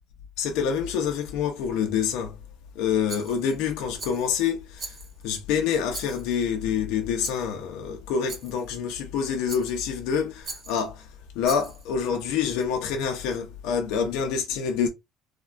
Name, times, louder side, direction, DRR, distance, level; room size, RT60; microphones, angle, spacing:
voice 1, 0.4-2.4 2.7-5.0 5.2-11.1 11.3-14.9, left 7 dB, 85° left, 0.5 m, -27 dB
Rattle, 3.1-3.6 4.0-4.4 4.8-5.3 5.9-6.5 7.2-7.5 8.3-8.7 9.5-9.9 10.4-10.9 11.4-11.9, right 4 dB, 35° right, 0.9 m, -40 dB
3.4 x 2.1 x 2.4 m
cardioid pair, 150°, 0 cm